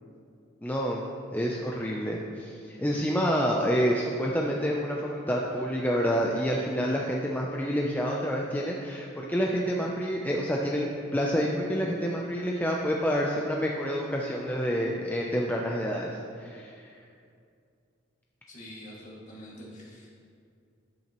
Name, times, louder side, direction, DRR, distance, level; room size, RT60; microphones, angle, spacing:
voice 1, 0.6-16.9, equal, 10° left, -2 dB, 0.5 m, -28 dB
voice 2, 18.5-20.1, equal, 40° left, -6 dB, 2.1 m, -45 dB
10.5 x 8.5 x 3.1 m, 2.3 s
head